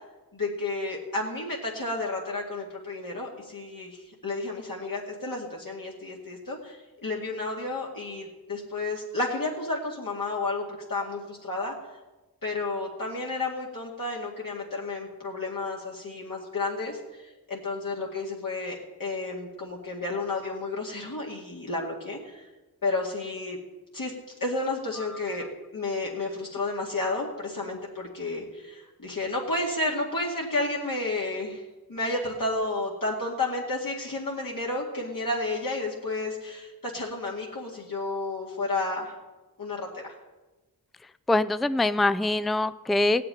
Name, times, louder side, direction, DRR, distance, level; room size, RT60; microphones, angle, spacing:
voice 1, 0.3-11.7 12.4-22.5 22.8-23.6 23.9-24.1 24.4-25.4 25.7-31.6 31.9-39.2 39.6-40.1, left 2 dB, 60° left, -3 dB, 2.3 m, -31 dB
voice 2, 41.3-43.2, left 2 dB, ahead, 14 dB, 0.4 m, -24 dB
16.5 x 6.8 x 9.8 m, 1.1 s
wide cardioid pair, 65°, 38 cm